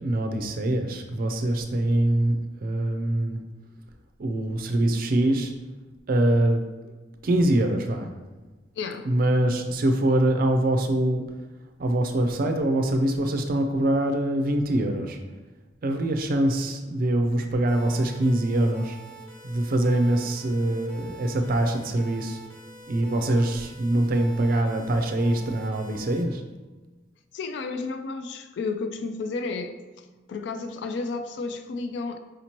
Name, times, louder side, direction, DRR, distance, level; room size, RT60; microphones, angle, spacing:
voice 1, 0.0-3.4 4.2-5.5 6.1-6.9 7.2-8.1 9.0-11.2 11.8-15.2 15.8-19.0 19.4-22.4 22.9-26.4, right 1 dB, 50° right, 5 dB, 0.4 m, -24 dB
voice 2, 8.8-9.1 27.3-32.2, left 4 dB, 65° left, 7 dB, 0.3 m, -32 dB
sound 1, 17.7-26.2, right 3 dB, 10° left, 0.7 m, -46 dB
4.9 x 2.9 x 2.9 m, 1.2 s
head